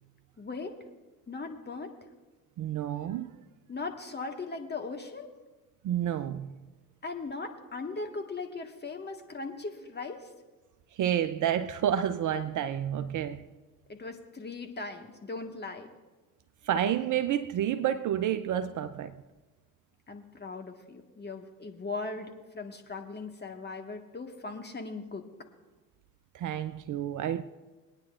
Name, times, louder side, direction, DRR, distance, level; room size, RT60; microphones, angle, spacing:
voice 1, 0.4-0.8 1.3-1.9 3.7-5.3 7.0-10.3 13.9-15.9 20.1-25.3, left 3 dB, 20° left, 1.6 m, -39 dB
voice 2, 2.6-3.4 5.8-6.5 10.9-13.5 16.6-19.2 26.3-27.4, right 10 dB, 40° right, 0.6 m, -29 dB
22.5 x 9.7 x 2.5 m
hypercardioid pair, 60°, 46 cm